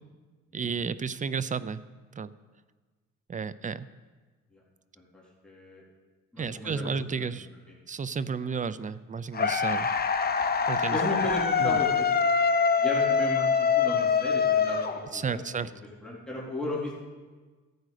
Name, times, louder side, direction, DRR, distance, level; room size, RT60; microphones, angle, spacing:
voice 1, 0.5-1.8 2.2-2.3 3.3-3.9 6.4-7.5 7.9-9.9 10.7-11.0 11.6-11.8 15.1-15.7, right 5 dB, 25° right, 16 dB, 0.5 m, -32 dB
voice 2, 5.0-5.8 6.3-6.9 7.2-7.3 10.9-12.1 12.8-16.9, left 1 dB, 5° left, -6 dB, 3.5 m, -35 dB
sound 1, 9.3-15.4, left 6 dB, 30° left, 0.9 m, -24 dB
15.0 x 8.0 x 4.9 m, 1.3 s
cardioid pair, 90°, 30 cm